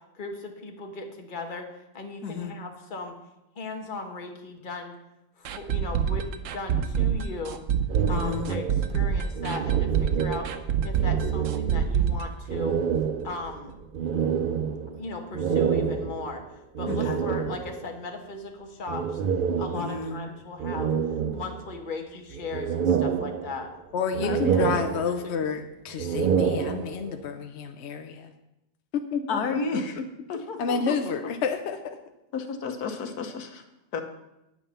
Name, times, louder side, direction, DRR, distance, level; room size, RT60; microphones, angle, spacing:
voice 1, 0.1-1.7 1.9-3.1 3.5-5.0 5.4-7.6 8.1-10.5 10.8-12.8 13.2-13.8 14.9-16.4 16.8-19.2 19.6-20.9 21.3-23.7 25.2-25.3, left 3 dB, 35° left, 3 dB, 1.3 m, -37 dB
voice 2, 2.2-2.5 8.1-8.5 16.9-17.2 19.7-20.2 24.2-24.7 29.3-29.9 30.3-30.9 32.3-33.6 33.9-34.0, left 5 dB, 80° left, 6 dB, 1.5 m, -32 dB
sound 1, 5.4-13.2 13.4-13.5 13.9-14.0, right 8 dB, 65° right, 1.0 m, -26 dB
sound 2, 7.9-10.7 11.0-12.1 12.5-17.9 18.9-20.2 20.6-21.9 22.3-23.8 24.1-25.4 25.9-27.2, right 7 dB, 80° right, 0.4 m, -28 dB
voice 3, 23.9-28.3 28.9-30.1 30.3-32.0, left 5 dB, 55° left, 6 dB, 0.8 m, -30 dB
9.2 x 9.0 x 5.6 m, 0.90 s
omnidirectional pair, 1.6 m